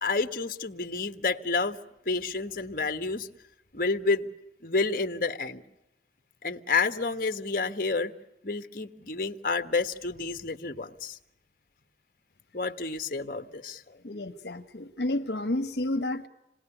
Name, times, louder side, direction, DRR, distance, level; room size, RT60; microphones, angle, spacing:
voice 1, 0.0-1.8 2.0-3.3 3.7-4.3 4.6-5.6 6.4-8.1 8.4-11.2 12.5-14.0, left 4 dB, 50° left, 7 dB, 1.3 m, -29 dB
voice 2, 14.0-16.3, left 1 dB, 70° left, 7 dB, 1.2 m, -31 dB
27.0 x 20.0 x 9.9 m, 0.93 s
head